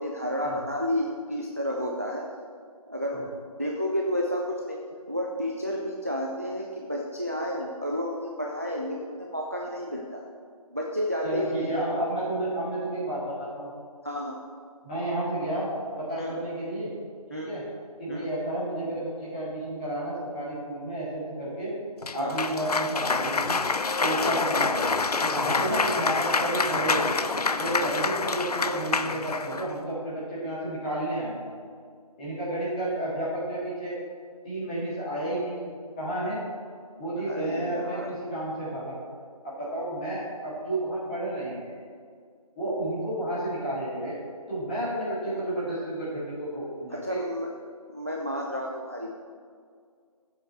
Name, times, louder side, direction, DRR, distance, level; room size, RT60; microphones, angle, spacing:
voice 1, 0.0-2.2 2.9-4.8 5.1-10.2 10.7-11.5 14.0-14.4 16.2-16.4 17.3-17.5 18.1-18.3 22.2-22.4 24.0-24.3 25.5-25.6 27.5-27.8 37.2-38.1 46.9-47.5 47.9-49.2, equal, 25° right, 0 dB, 0.4 m, -31 dB
voice 2, 11.2-13.7 14.8-15.7 16.0-16.9 17.3-17.6 18.0-21.7 22.1-23.6 24.0-27.1 27.6-31.5 32.2-33.9 34.4-36.4 37.0-39.0 39.4-41.8 42.6-44.1 44.5-47.3, right 1 dB, 10° left, -10 dB, 2.3 m, -31 dB
Cheering / Applause, 22.0-29.7, left 4 dB, 75° left, 0.5 m, -27 dB
13.5 x 7.8 x 3.2 m, 2.1 s
figure-of-eight pair, 170°, 20 cm